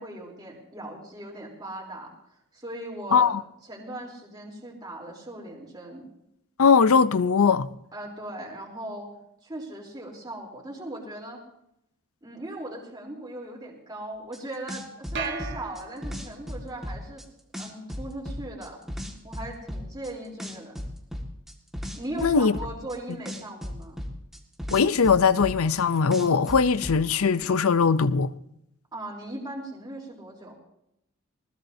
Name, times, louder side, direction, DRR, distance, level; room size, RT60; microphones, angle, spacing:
voice 1, 0.0-2.1 2.5-3.3 3.7-6.1 7.9-9.1 9.4-11.4 12.2-17.2 17.6-18.8 19.2-20.7 21.9-24.0 28.9-30.5, right 1 dB, 20° right, 3.6 m, -38 dB
voice 2, 6.6-7.7 22.2-22.5 24.7-28.3, left 5 dB, 70° left, 0.6 m, -20 dB
sound 1, 14.3-14.4 14.7-17.2 17.5-20.1 20.4-23.0 23.2-25.8 26.1-27.0, equal, ahead, 1.9 m, -35 dB
sound 2, 15.2-16.5, right 5 dB, 50° right, 1.4 m, -36 dB
21.0 x 19.5 x 2.8 m
head